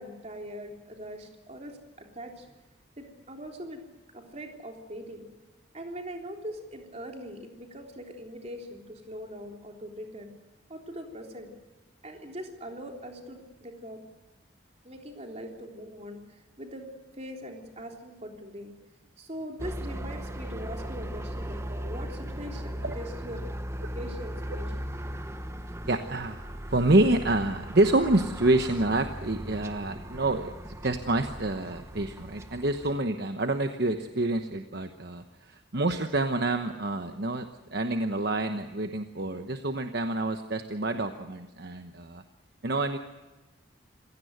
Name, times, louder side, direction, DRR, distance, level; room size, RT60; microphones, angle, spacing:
voice 1, 0.0-2.6 3.0-3.8 4.1-5.3 5.7-10.3 10.7-11.5 12.0-14.0 14.8-16.9 17.1-18.7 19.2-23.4 24.0-24.7, equal, 35° right, 2 dB, 3.5 m, -41 dB
sound 1, 19.6-33.0, equal, 15° right, 1.0 m, -38 dB
voice 2, 25.9-26.4 26.7-42.2 42.6-43.0, right 2 dB, 55° right, 6 dB, 1.1 m, -27 dB
27.0 x 17.0 x 8.0 m, 1.1 s
head